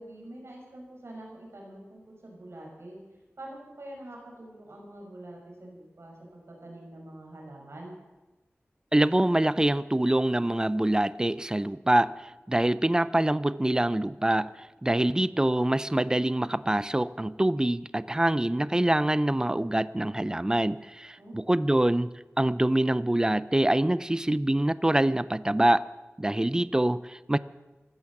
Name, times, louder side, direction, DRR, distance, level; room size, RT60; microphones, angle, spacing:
voice 1, 0.0-3.0 3.4-8.0 21.2-21.6, right 1 dB, 70° right, -1 dB, 5.5 m, -45 dB
voice 2, 8.9-14.5 14.8-22.1 22.4-25.9 26.2-27.4, right 1 dB, 15° right, 17 dB, 0.5 m, -25 dB
15.5 x 12.5 x 7.3 m, 1.1 s
wide cardioid pair, 70°, 5 cm